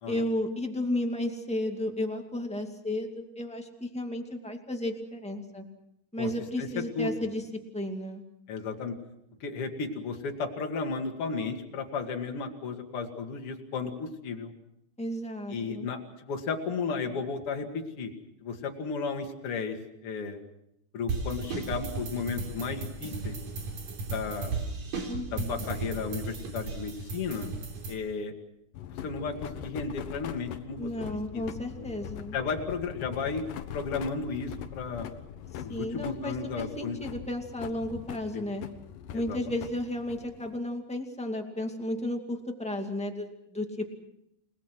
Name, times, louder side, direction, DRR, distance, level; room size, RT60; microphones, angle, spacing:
voice 1, 0.1-5.6 6.1-7.4 7.7-8.2 15.0-15.9 25.1-25.6 30.8-32.4 35.7-38.6 39.1-43.9, left 1 dB, 5° left, 3 dB, 1.1 m, -33 dB
voice 2, 6.6-7.3 8.5-9.0 9.4-14.5 15.5-18.1 18.4-20.4 20.9-23.4 24.1-24.6 25.3-27.5 27.9-28.3 29.0-31.4 31.8-31.9 32.3-33.4 33.7-35.1 35.6-37.0 38.3-38.5 39.1-39.6, left 4 dB, 40° left, 3 dB, 2.7 m, -34 dB
sound 1, 21.1-27.9, right 4 dB, 60° right, 5.1 m, -35 dB
sound 2, 28.7-40.6, left 9 dB, 70° left, 2.4 m, -42 dB
30.0 x 19.5 x 6.2 m, 0.80 s
omnidirectional pair, 4.4 m